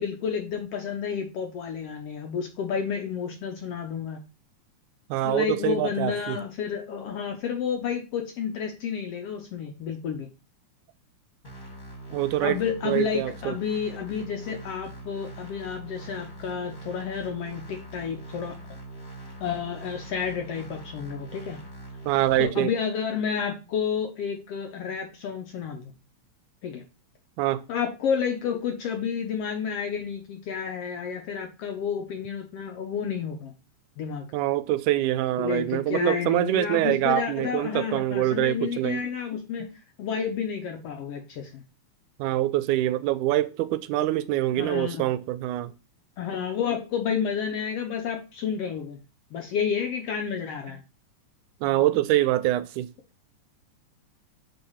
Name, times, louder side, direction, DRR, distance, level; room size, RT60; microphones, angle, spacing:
voice 1, 0.0-4.2 5.2-10.3 12.4-18.8 19.4-21.6 22.4-25.9 26.6-26.8 27.7-33.5 34.0-34.3 35.4-39.7 40.0-41.6 44.6-45.1 46.2-49.0 49.3-50.8, left 7 dB, 70° left, 1.6 m, -30 dB
voice 2, 5.1-6.4 12.1-12.6 12.8-13.5 22.1-22.7 27.4-27.6 34.3-39.0 42.2-45.7 51.6-52.9, right 14 dB, 80° right, 2.0 m, -25 dB
sound 1, 11.4-22.4, right 2 dB, 20° left, 1.3 m, -42 dB
6.8 x 4.0 x 5.5 m
omnidirectional pair, 3.6 m